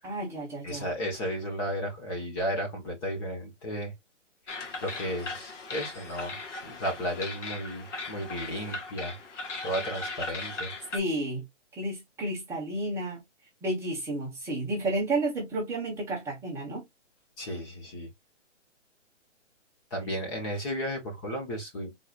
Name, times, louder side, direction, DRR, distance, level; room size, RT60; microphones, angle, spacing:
voice 1, 0.0-0.9 10.9-11.4 11.8-13.2 13.6-16.8, right 2 dB, 5° right, 1.4 m, -31 dB
voice 2, 0.6-3.9 4.8-6.4 6.6-9.2 9.6-10.7 17.4-18.1 19.9-21.9, equal, 20° left, 1.6 m, -33 dB
sound 1, 4.5-11.0, left 3 dB, 75° left, 2.2 m, -38 dB
4.8 x 4.0 x 2.5 m
hypercardioid pair, 155°, 37 cm